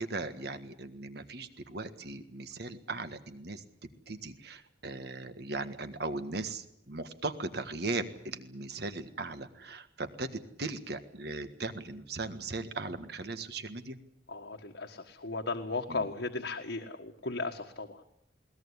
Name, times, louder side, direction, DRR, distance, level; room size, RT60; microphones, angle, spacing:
voice 1, 0.0-3.6 4.1-10.3 10.6-14.0 15.9-16.1, right 3 dB, 65° right, 9 dB, 1.7 m, -38 dB
voice 2, 14.3-18.1, left 3 dB, 85° left, 2 dB, 1.6 m, -36 dB
21.5 x 18.5 x 9.8 m, 0.74 s
head